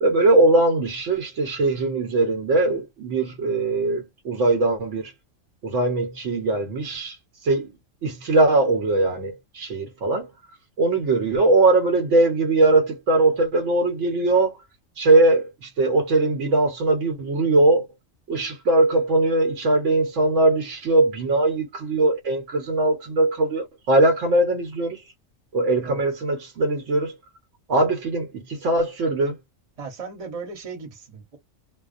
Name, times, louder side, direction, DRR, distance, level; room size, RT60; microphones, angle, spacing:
voice 1, 0.0-5.1 5.6-7.7 8.0-10.3 10.8-14.6 15.0-17.9 18.3-25.0 25.5-27.1 27.7-29.4, right 2 dB, 70° right, 1.1 m, -21 dB
voice 2, 29.8-31.4, right 4 dB, 30° right, 1.0 m, -36 dB
2.3 x 2.1 x 2.5 m
omnidirectional pair, 1.3 m